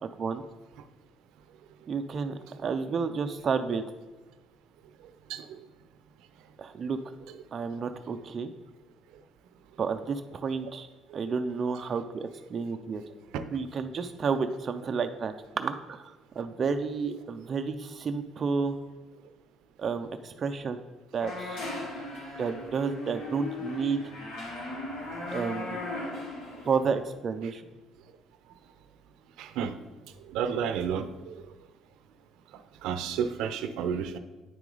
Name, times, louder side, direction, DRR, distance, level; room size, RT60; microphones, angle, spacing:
voice 1, 0.0-0.4 1.9-3.8 6.6-7.0 7.5-8.5 9.8-10.9 11.1-13.0 13.5-18.8 19.8-20.8 21.1-21.6 22.4-24.0 25.3-25.8 26.7-27.6, right 5 dB, 30° right, 6 dB, 0.4 m, -31 dB
sound 1, 21.2-26.9, left 2 dB, 90° left, 2.2 m, -37 dB
voice 2, 29.4-29.7 30.3-31.4 32.8-34.2, right 7 dB, 80° right, 10 dB, 0.5 m, -31 dB
9.3 x 6.1 x 3.9 m, 1.2 s
cardioid pair, 170°, 0 cm